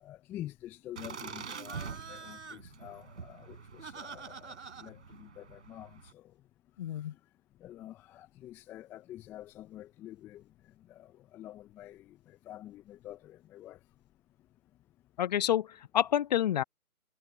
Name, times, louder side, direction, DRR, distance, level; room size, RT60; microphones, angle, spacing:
voice 1, 0.0-6.3 7.6-10.4 10.9-13.8, left 13 dB, 5° left, 0.8 m, -48 dB
Laughter, 1.0-6.1, right 5 dB, 55° right, 4.5 m, -44 dB
voice 2, 6.8-7.1 15.2-16.6, left 10 dB, 30° left, 1.6 m, -28 dB
figure-of-eight pair, 140°, 43 cm